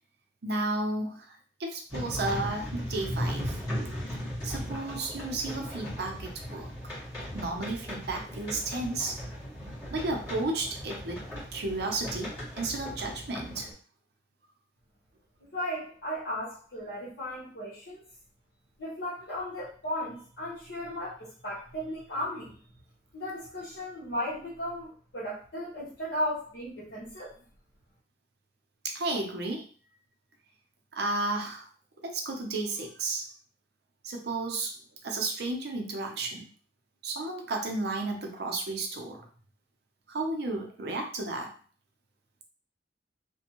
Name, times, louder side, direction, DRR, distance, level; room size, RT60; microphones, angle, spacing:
voice 1, 0.4-3.6 4.4-6.7 7.3-9.2 9.9-11.2 11.5-13.7 28.8-29.6 30.9-31.7 32.0-33.2 34.0-34.7 35.0-36.5 37.0-39.3 40.1-41.5, right 2 dB, 60° right, 2 dB, 0.6 m, -33 dB
sound 1, 1.9-13.7, equal, 15° left, 1.5 m, -37 dB
voice 2, 15.4-18.0 18.8-22.6 23.1-27.3, equal, 70° left, -9 dB, 1.0 m, -35 dB
2.5 x 2.2 x 2.9 m, 0.42 s
head